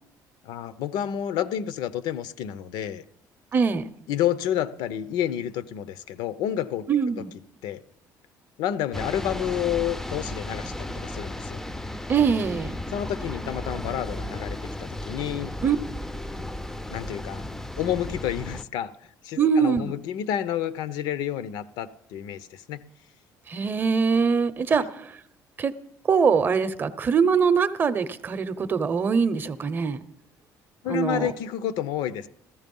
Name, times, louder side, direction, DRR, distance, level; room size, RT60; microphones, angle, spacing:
voice 1, 0.4-3.0 4.1-6.8 7.2-7.3 7.6-7.8 8.6-11.6 12.9-15.5 16.9-17.4 17.8-18.9 19.2-22.8 24.7-24.9 30.8-32.3, left 10 dB, 80° left, 15 dB, 0.7 m, -29 dB
voice 2, 3.5-3.9 6.9-7.3 12.1-12.7 15.6-15.8 19.4-19.9 23.5-25.2 25.6-25.7 26.1-30.0 30.9-31.3, right 6 dB, 30° right, 14 dB, 0.7 m, -23 dB
sound 1, 8.9-18.6, left 1 dB, 5° left, 0.4 m, -34 dB
15.0 x 13.5 x 5.4 m, 0.76 s
cardioid pair, 155°, 7 cm